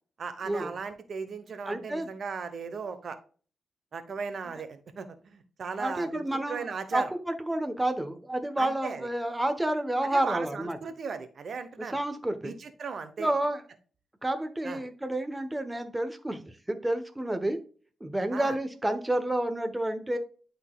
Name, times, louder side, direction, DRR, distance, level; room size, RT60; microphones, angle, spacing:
voice 1, 0.2-3.2 3.9-6.2 6.5-7.1 8.6-9.1 10.0-12.0 12.4-13.3 14.6-14.8 18.3-18.5, right 5 dB, 60° right, 10 dB, 0.9 m, -37 dB
voice 2, 1.7-2.1 5.8-10.8 11.9-12.5 13.2-13.6 14.2-17.6 18.0-20.2, right 1 dB, 10° right, 7 dB, 1.0 m, -30 dB
11.5 x 3.9 x 2.3 m, 0.40 s
wide cardioid pair, 110°, 0 cm